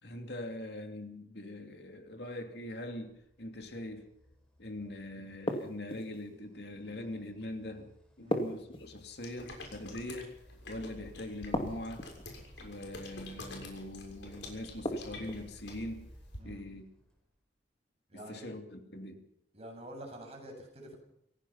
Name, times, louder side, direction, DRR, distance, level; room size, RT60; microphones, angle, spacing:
voice 1, 0.0-4.1 4.6-7.9 8.2-10.4 10.7-12.1 12.6-16.1 16.4-16.9 18.1-19.2, left 1 dB, 60° left, 2.8 m, -42 dB
sound 1, 2.9-17.4, equal, 5° left, 5.0 m, -57 dB
sound 2, 5.5-6.2 8.3-9.3 11.5-12.3 14.8-15.5, equal, 30° left, 2.5 m, -35 dB
sound 3, 9.2-16.4, left 2 dB, 75° left, 6.7 m, -48 dB
voice 2, 18.1-18.5 19.5-21.0, right 1 dB, 35° right, 7.6 m, -47 dB
26.0 x 17.5 x 5.8 m
head